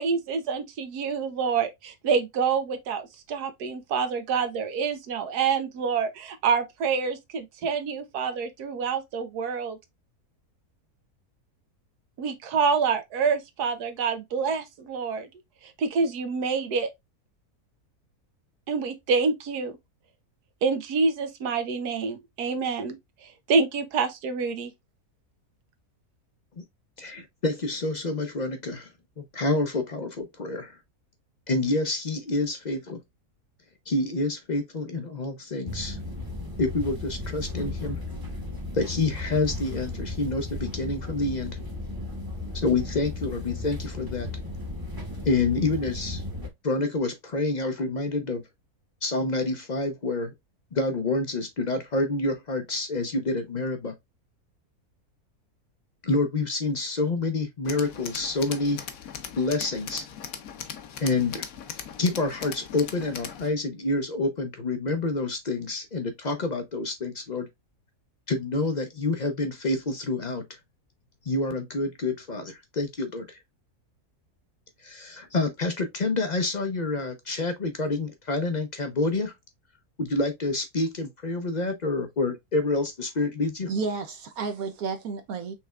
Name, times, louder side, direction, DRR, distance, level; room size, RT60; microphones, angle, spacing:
voice 1, 0.0-9.8 12.2-15.3 15.8-16.9 18.7-19.8 20.6-24.7, right 5 dB, 90° right, 1.4 m, -27 dB
voice 2, 27.0-28.9 29.2-30.8 31.5-33.0 33.9-36.0 36.6-38.0 38.7-41.6 42.5-44.3 45.2-46.2 46.6-48.4 49.0-50.3 50.7-53.9 56.0-58.9 59.4-60.1 61.0-61.4 62.0-67.5 68.3-70.4 71.2-73.4 74.8-79.3 80.0-83.7, left 2 dB, 50° left, 0.5 m, -28 dB
train ride in germany, 35.7-46.5, left 2 dB, 15° right, 1.0 m, -35 dB
Tools, 57.6-63.5, left 8 dB, 70° left, 1.1 m, -39 dB
voice 3, 83.7-85.6, right 4 dB, 70° right, 1.1 m, -31 dB
5.8 x 3.3 x 2.3 m
omnidirectional pair, 1.6 m